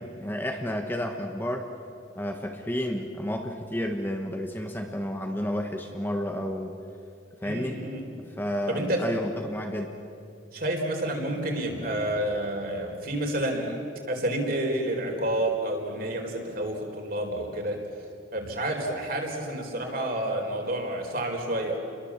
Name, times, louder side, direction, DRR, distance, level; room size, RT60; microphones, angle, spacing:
voice 1, 0.0-1.7 2.2-6.8 7.4-7.9 8.4-9.9, equal, 10° left, 3 dB, 1.2 m, -31 dB
voice 2, 7.4-8.1 8.7-9.0 10.5-13.8 14.1-17.8 18.3-21.8, right 1 dB, 45° right, 1 dB, 4.3 m, -29 dB
30.0 x 22.0 x 7.4 m, 2.6 s
head